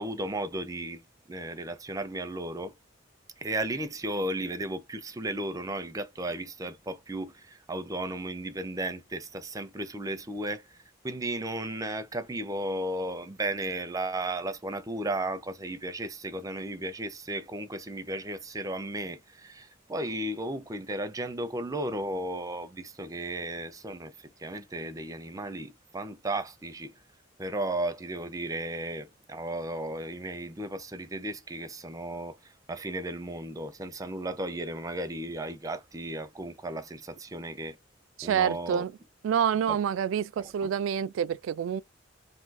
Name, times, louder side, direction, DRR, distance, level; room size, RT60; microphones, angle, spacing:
voice 1, 0.0-2.7 3.4-10.8 11.0-26.9 27.4-37.8 38.2-38.8 39.7-39.8 40.4-40.5, right 1 dB, 20° right, 0.5 m, -35 dB
voice 2, 38.2-38.9 39.2-41.8, right 8 dB, 90° right, 0.3 m, -27 dB
2.6 x 2.3 x 4.0 m
head